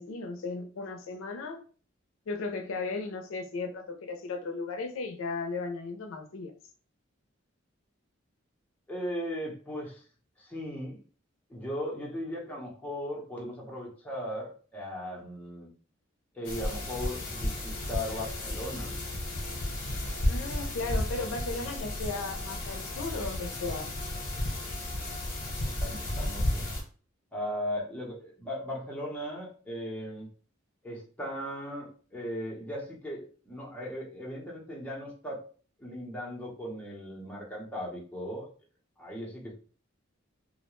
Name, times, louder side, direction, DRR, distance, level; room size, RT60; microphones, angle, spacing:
voice 1, 0.0-1.6 2.3-6.5 20.3-23.9, left 3 dB, 85° left, 6 dB, 0.4 m, -36 dB
voice 2, 8.9-10.0 10.4-11.0 11.5-15.7 16.3-19.0 25.8-26.7 27.3-30.3 30.8-35.4 35.8-38.5 39.0-39.5, equal, 10° left, -3 dB, 0.7 m, -37 dB
sound 1, 16.4-26.8, left 1 dB, 50° left, 0.8 m, -33 dB
2.3 x 2.1 x 3.0 m, 0.40 s
head